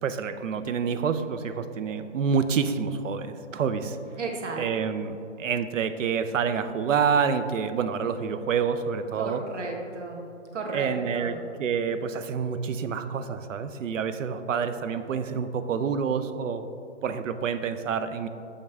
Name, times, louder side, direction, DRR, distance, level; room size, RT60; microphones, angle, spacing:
voice 1, 0.0-4.0 4.6-9.4 10.7-16.7 17.0-18.3, right 6 dB, 90° right, 10 dB, 0.6 m, -28 dB
voice 2, 4.2-4.6 9.2-10.2 10.5-11.4, right 3 dB, 70° right, 1 dB, 1.3 m, -34 dB
6.7 x 5.4 x 3.5 m, 2.6 s
hypercardioid pair, 170°, 37 cm